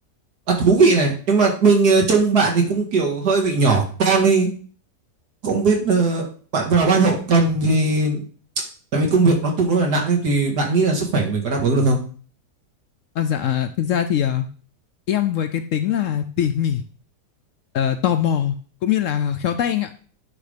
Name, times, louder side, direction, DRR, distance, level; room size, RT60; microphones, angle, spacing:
voice 1, 0.5-4.5 5.4-6.3 6.5-8.2 8.9-12.0, right 3 dB, 80° right, 0 dB, 2.3 m, -18 dB
voice 2, 13.2-14.5 15.1-16.8 17.7-18.6 18.8-19.9, left 9 dB, 65° left, 9 dB, 0.8 m, -22 dB
9.8 x 3.4 x 5.0 m, 0.41 s
omnidirectional pair, 1.7 m